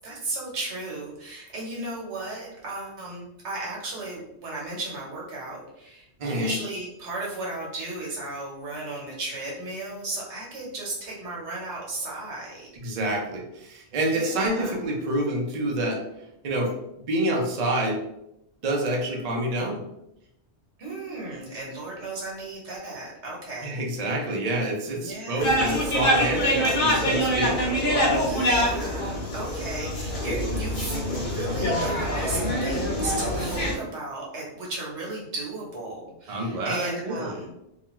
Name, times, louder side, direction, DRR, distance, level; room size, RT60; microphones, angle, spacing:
voice 1, 0.0-12.7 14.0-14.7 20.8-23.8 24.9-25.8 28.2-37.5, right 2 dB, 80° right, -3 dB, 1.1 m, -35 dB
voice 2, 6.2-6.5 12.8-16.0 16.4-16.7 17.0-18.0 18.6-19.8 23.6-27.5 36.3-37.3, right 1 dB, 45° right, -1 dB, 0.5 m, -27 dB
sound 1, 25.4-33.7, equal, 55° left, 0.8 m, -25 dB
2.4 x 2.3 x 2.9 m, 0.85 s
omnidirectional pair, 1.2 m